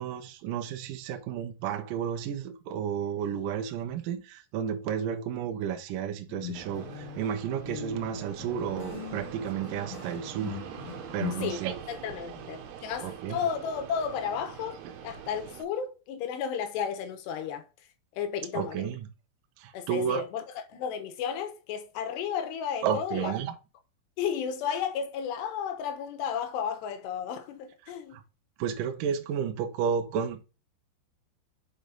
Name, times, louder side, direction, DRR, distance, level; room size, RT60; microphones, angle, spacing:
voice 1, 0.0-10.6 11.1-11.8 13.0-13.4 18.5-19.1 19.6-20.2 22.8-23.5 28.1-28.2 28.6-30.4, right 8 dB, 90° right, 1.9 m, -32 dB
sound 1, 6.3-11.5, left 15 dB, 90° left, 3.3 m, -41 dB
Fixed-wing aircraft airplane, 6.5-15.6, right 9 dB, 70° right, 2.7 m, -44 dB
voice 2, 11.3-17.7 18.2-19.0 19.7-23.3 24.2-28.2, left 7 dB, 70° left, 2.9 m, -33 dB
7.1 x 5.0 x 3.9 m
omnidirectional pair, 5.5 m